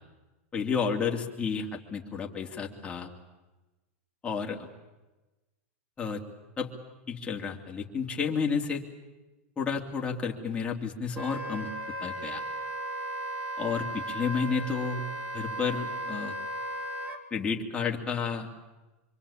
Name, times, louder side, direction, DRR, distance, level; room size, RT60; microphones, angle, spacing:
voice 1, 0.5-3.1 4.2-4.7 6.0-6.2 6.6-6.7 7.1-8.8 9.6-11.7 12.0-12.4 13.6-16.3 17.3-18.5, left 5 dB, 15° left, 0 dB, 3.0 m, -31 dB
Wind instrument woodwind instrument, 11.1-17.2, right 1 dB, 20° right, 2.7 m, -36 dB
26.0 x 24.5 x 8.7 m, 1.1 s
supercardioid pair, 145°, 7 cm